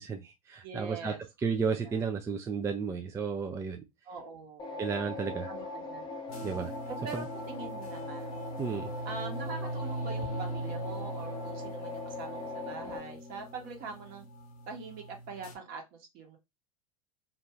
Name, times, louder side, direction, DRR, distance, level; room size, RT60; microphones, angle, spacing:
voice 1, 0.0-3.8 4.8-5.5 6.4-6.7 7.1-7.2 8.6-8.9, right 5 dB, 15° right, 0.3 m, -33 dB
voice 2, 0.6-1.2 1.8-2.0 4.0-4.8 5.5-6.4 6.9-8.4 9.0-14.3 14.7-16.4, right 4 dB, 50° right, 1.0 m, -43 dB
sound 1, 4.6-13.0, left 2 dB, 25° left, 0.8 m, -40 dB
sound 2, 6.3-15.5, right 1 dB, 70° left, 1.0 m, -41 dB
2.6 x 2.3 x 2.9 m
hypercardioid pair, 85°, 19 cm